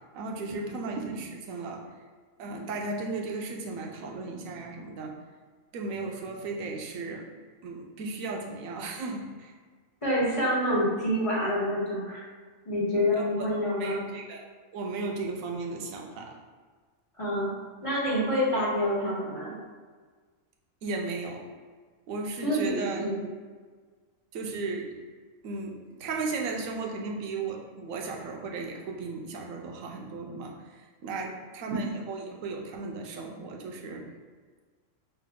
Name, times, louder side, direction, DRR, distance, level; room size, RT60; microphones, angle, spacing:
voice 1, 0.1-1.8 2.4-5.1 5.7-7.3 7.6-9.5 13.2-14.4 14.7-16.4 20.8-21.4 22.1-23.1 24.3-24.9 25.4-25.7 26.0-34.0, right 3 dB, 90° right, 0 dB, 1.0 m, -35 dB
voice 2, 10.0-12.3 12.6-14.1 17.2-17.5 17.8-19.5 22.4-23.2, equal, 25° left, -7 dB, 1.1 m, -27 dB
5.6 x 2.2 x 3.5 m, 1.5 s
omnidirectional pair, 1.4 m